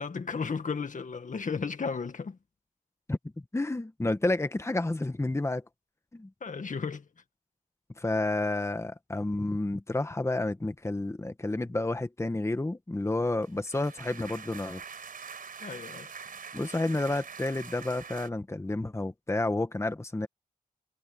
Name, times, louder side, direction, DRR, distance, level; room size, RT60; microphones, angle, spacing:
voice 1, 0.0-2.4 6.4-7.1 15.6-16.1, left 5 dB, 65° left, 2.0 m, -34 dB
voice 2, 3.5-5.6 6.1-6.3 8.0-14.8 16.5-20.3, left 2 dB, 20° left, 1.4 m, -30 dB
sound 1, 13.3-18.3, right 6 dB, 85° right, 4.9 m, -44 dB
wide cardioid pair, 85°, 14 cm